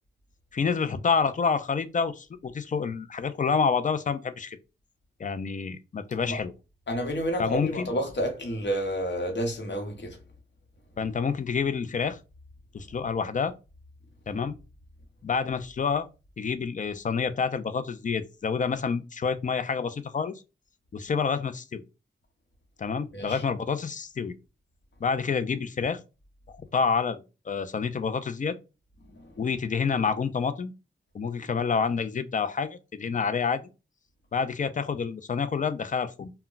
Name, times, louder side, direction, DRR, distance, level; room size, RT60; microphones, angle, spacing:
voice 1, 0.5-4.6 5.2-6.5 7.4-7.9 11.0-12.2 12.7-13.5 14.3-14.6 15.2-16.1 16.4-20.3 20.9-21.8 22.8-24.3 25.0-26.0 26.5-28.6 29.4-30.7 31.1-33.7 34.3-36.3, left 5 dB, 40° left, 0.4 m, -28 dB
voice 2, 6.9-10.2 23.1-23.4 29.0-29.3, equal, 60° left, 1.0 m, -30 dB
2.2 x 2.1 x 3.8 m
cardioid pair, 60°, 21 cm